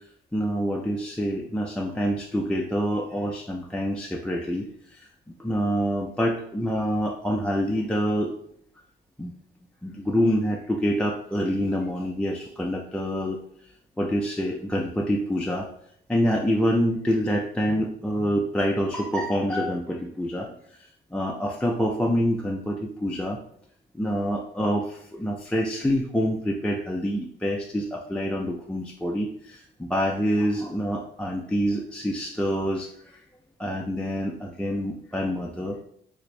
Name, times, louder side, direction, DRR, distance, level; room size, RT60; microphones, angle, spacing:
voice 1, 0.3-5.1 5.4-8.3 9.2-9.3 9.8-13.4 14.0-15.7 16.1-23.4 23.9-33.2 33.6-35.8, equal, 5° left, -1 dB, 0.3 m, -26 dB
3.4 x 2.5 x 3.1 m, 0.66 s
cardioid pair, 90°, 20 cm